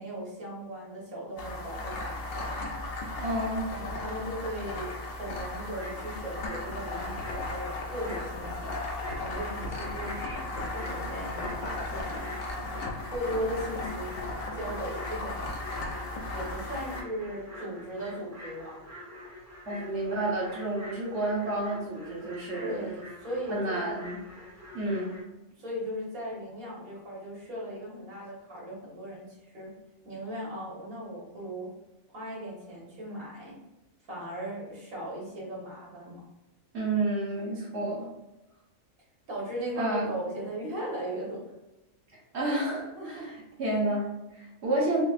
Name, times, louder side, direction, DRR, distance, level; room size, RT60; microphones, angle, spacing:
voice 1, 0.0-2.6 3.7-8.8 9.1-10.2 10.5-12.3 13.1-14.1 14.5-15.5 16.3-18.8 19.9-20.3 22.6-24.0 25.6-29.7 30.1-31.7 32.1-33.6 34.1-36.2 37.8-37.9 39.3-41.5 42.9-43.4, equal, 85° right, -5 dB, 1.9 m, -37 dB
sound 1, 1.4-17.0, left 2 dB, 55° left, 0.7 m, -36 dB
voice 2, 3.2-3.7 19.7-22.9 23.5-24.2 24.7-25.2 36.7-38.1 39.8-40.1 42.3-45.0, right 2 dB, 50° right, -5 dB, 1.5 m, -30 dB
sound 2, 5.7-25.2, left 1 dB, 15° right, 0.9 m, -46 dB
5.7 x 2.1 x 2.5 m, 0.97 s
omnidirectional pair, 1.5 m